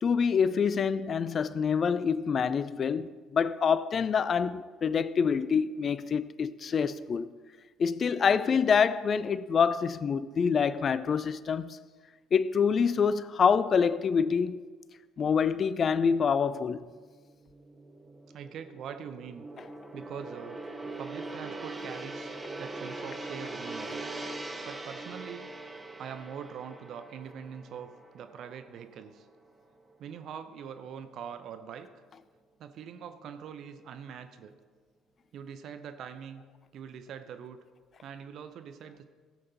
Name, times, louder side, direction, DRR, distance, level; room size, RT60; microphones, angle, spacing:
voice 1, 0.0-7.3 7.8-11.8 12.3-14.6 15.2-16.8, left 6 dB, 40° left, 0.4 m, -26 dB
Gong, 17.0-29.5 29.8-30.1, right 2 dB, 15° right, 1.3 m, -42 dB
voice 2, 18.3-19.5 19.9-20.6 21.0-24.0 24.6-25.5 26.0-29.3 30.0-31.9 32.6-34.5 35.3-36.4 36.7-37.6 38.0-39.0, right 7 dB, 50° right, 0.7 m, -43 dB
16.5 x 7.8 x 4.0 m
figure-of-eight pair, 50°, 0 cm